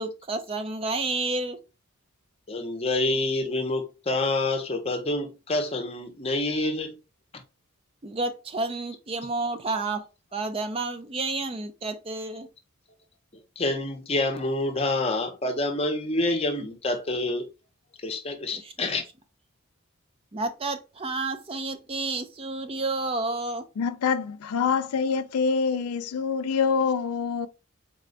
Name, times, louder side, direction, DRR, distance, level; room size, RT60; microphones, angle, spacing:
voice 1, 0.0-1.6 8.0-10.0 10.3-12.5 18.5-18.9 20.3-23.7, right 3 dB, 25° right, 0.4 m, -30 dB
voice 2, 2.5-6.9 13.6-17.5 18.0-19.0, left 2 dB, 25° left, 0.7 m, -27 dB
voice 3, 23.8-27.5, left 5 dB, 85° left, 0.4 m, -25 dB
4.1 x 2.2 x 3.8 m
head